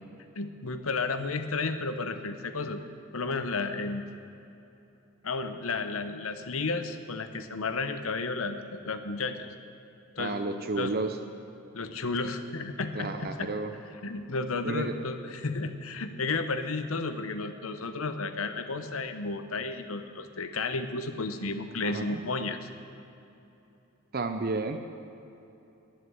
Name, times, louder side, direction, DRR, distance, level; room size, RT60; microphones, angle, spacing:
voice 1, 0.3-2.8 3.1-4.0 5.2-9.5 10.2-10.4 10.8-10.9 11.7-13.5 14.0-22.7, left 3 dB, 80° left, 8 dB, 0.9 m, -32 dB
voice 2, 10.2-11.2 12.9-13.7 14.6-15.0 21.8-22.2 24.1-24.8, right 3 dB, 45° right, 8 dB, 0.6 m, -31 dB
11.0 x 10.5 x 7.8 m, 2.9 s
head